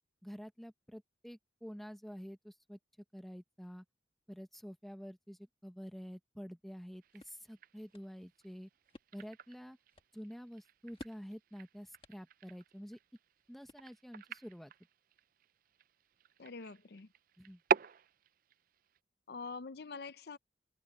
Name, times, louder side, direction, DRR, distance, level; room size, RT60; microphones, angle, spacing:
voice 1, 0.2-2.8 3.1-3.8 4.3-8.7 9.1-9.8 10.1-13.0 13.5-14.7 17.4-17.6, equal, ahead, 1.0 m, -49 dB
sound 1, 6.8-14.3, left 1 dB, 30° left, 1.4 m, -60 dB
sound 2, 7.0-19.0, right 7 dB, 50° right, 0.4 m, -43 dB
voice 2, 16.4-17.1 19.3-20.4, left 4 dB, 60° left, 0.6 m, -45 dB
head